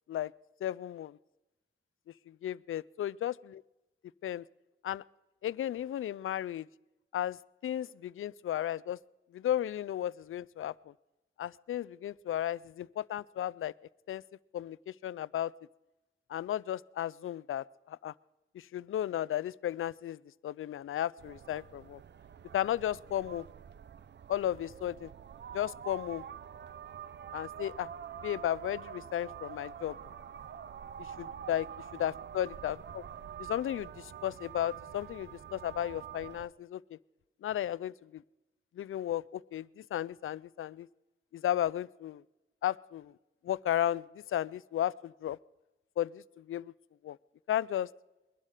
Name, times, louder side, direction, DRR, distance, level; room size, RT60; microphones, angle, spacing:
voice 1, 0.6-1.2 2.3-3.6 4.2-4.4 4.8-5.0 5.4-6.7 7.1-9.0 9.3-10.9 11.4-13.7 14.1-14.2 14.5-15.5 16.3-18.1 18.5-22.0 22.5-23.5 24.3-25.1 25.5-26.2 27.3-27.9 28.2-30.0 31.0-31.7 32.0-33.0 33.4-37.0 37.4-38.2 38.7-40.9 41.3-42.2 42.6-43.1 43.4-45.4 46.0-46.7 47.0-47.2 47.5-47.9, left 11 dB, 85° left, 21 dB, 0.4 m, -34 dB
sound 1, 21.2-36.5, right 8 dB, 60° right, 0.6 m, -46 dB
22.0 x 11.5 x 5.0 m, 1.0 s
wide cardioid pair, 90°, 21 cm